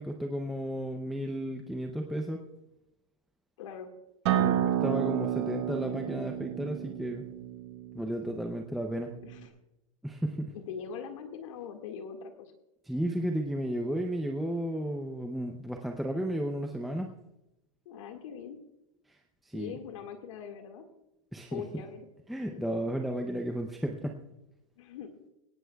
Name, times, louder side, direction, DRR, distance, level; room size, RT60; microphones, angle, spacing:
voice 1, 0.0-2.4 4.3-4.5 4.8-7.3 7.9-9.1 10.0-10.5 12.9-17.1 19.4-19.7 21.3-21.6 22.3-24.2, equal, ahead, 2 dB, 0.5 m, -33 dB
voice 2, 3.6-3.9 4.3-4.6 9.2-9.5 10.5-12.5 17.9-18.6 19.5-20.8 21.5-22.1 22.5-22.6 24.8-25.1, left 7 dB, 65° left, 4 dB, 1.8 m, -42 dB
Acoustic guitar, 4.3-9.5, right 12 dB, 55° right, 1.2 m, -31 dB
20.0 x 17.5 x 2.3 m, 0.91 s
supercardioid pair, 175°, 18 cm